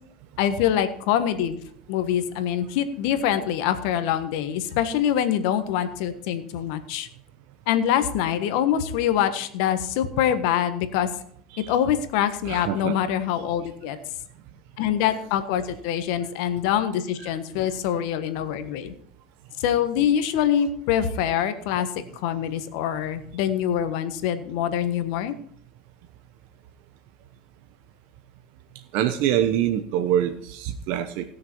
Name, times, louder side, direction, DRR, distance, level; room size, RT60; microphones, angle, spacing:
voice 1, 0.4-1.6 1.9-7.1 7.7-11.1 11.6-14.0 14.8-18.9 19.6-21.9 22.2-25.3, left 10 dB, 70° left, 10 dB, 1.4 m, -24 dB
voice 2, 12.4-13.0 28.9-31.2, right 11 dB, 65° right, 8 dB, 0.9 m, -25 dB
17.0 x 6.7 x 4.6 m, 0.64 s
hypercardioid pair, 85°, 4 cm